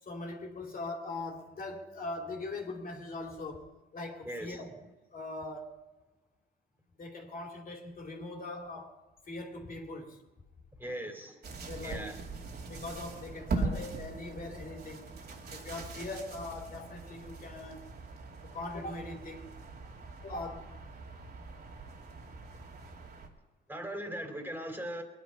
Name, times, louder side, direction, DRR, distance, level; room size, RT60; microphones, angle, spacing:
voice 1, 0.0-4.7 5.1-5.7 7.0-9.0 9.3-10.2 11.6-12.1 12.7-15.1 15.5-17.9 18.4-19.6 20.2-20.7, left 2 dB, 45° left, 2.9 m, -41 dB
voice 2, 4.2-4.6 10.8-11.4 11.8-12.2 23.7-25.0, right 1 dB, 10° right, 3.2 m, -39 dB
sound 1, 11.4-23.3, right 3 dB, 55° right, 2.8 m, -41 dB
21.5 x 10.5 x 5.7 m
cardioid pair, 90°, 20 cm